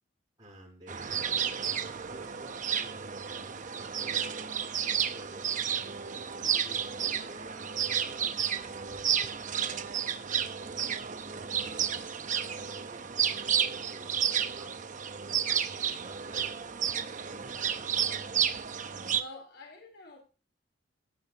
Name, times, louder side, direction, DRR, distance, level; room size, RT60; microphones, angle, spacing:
voice 1, 0.4-4.5 4.9-6.0 6.3-9.8 10.3-13.2 13.7-14.8 15.3-16.6 17.2-18.1, equal, 25° right, -10 dB, 7.7 m, -52 dB
sound 1, 0.9-19.2, right 8 dB, 45° right, 0.8 m, -32 dB
voice 2, 18.8-20.2, left 1 dB, 65° left, 0 dB, 3.9 m, -48 dB
16.0 x 8.6 x 2.9 m, 0.33 s
head